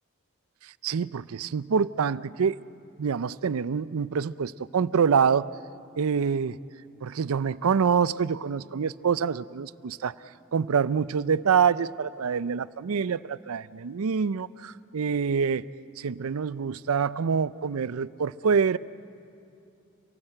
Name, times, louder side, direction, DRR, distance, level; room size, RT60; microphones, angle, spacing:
voice 1, 0.6-2.6 3.0-5.5 6.0-6.6 7.0-10.1 10.5-15.7 16.0-18.8, right 6 dB, 85° right, 18 dB, 0.5 m, -26 dB
28.5 x 18.0 x 7.8 m, 2.6 s
head